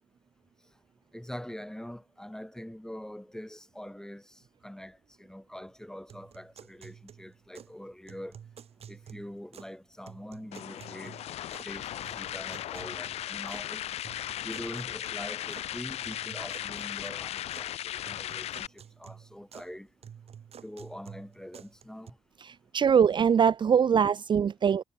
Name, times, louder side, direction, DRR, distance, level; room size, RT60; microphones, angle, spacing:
voice 1, 1.1-8.4 8.9-11.1 11.6-13.9 14.4-19.9 20.6-22.2, equal, 5° left, 2.7 m, -44 dB
sound 1, 6.1-7.8 8.1-9.8 10.1-11.7 12.0-13.7 14.0-15.7 16.0-17.7 18.0-19.7 20.0-22.1, right 8 dB, 60° right, 2.6 m, -51 dB
sound 2, 10.5-18.7, left 12 dB, 60° left, 0.4 m, -37 dB
voice 2, 22.4-24.8, right 7 dB, 40° right, 0.5 m, -23 dB
hypercardioid pair, 45°, 12 cm